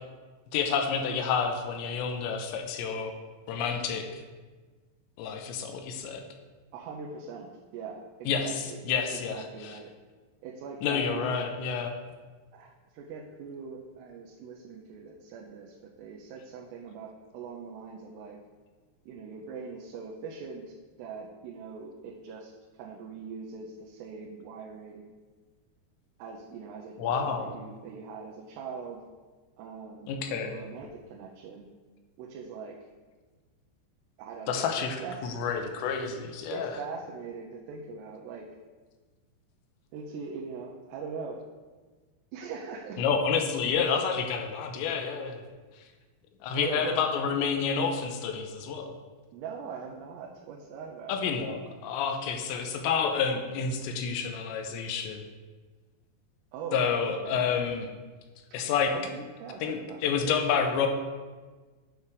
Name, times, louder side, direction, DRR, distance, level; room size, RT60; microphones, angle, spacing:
voice 1, 0.5-3.2 3.5-4.2 5.2-6.2 8.3-9.8 10.8-12.0 27.0-27.5 30.1-30.5 34.5-35.0 35.2-36.7 43.0-45.5 46.4-48.9 51.1-55.2 56.7-57.9 58.5-58.9 59.6-60.9, left 6 dB, 90° left, 4 dB, 2.9 m, -29 dB
voice 2, 6.7-8.8 9.1-9.9 10.4-11.4 12.5-18.4 19.1-25.1 26.2-29.0 29.6-31.7 32.2-32.8 34.2-35.2 36.5-38.5 39.9-41.4 42.3-43.1 46.5-47.0 49.3-51.2 56.5-57.4 58.9-60.0, right 5 dB, 80° right, -2 dB, 2.7 m, -41 dB
9.7 x 3.4 x 6.4 m, 1.4 s
omnidirectional pair, 5.1 m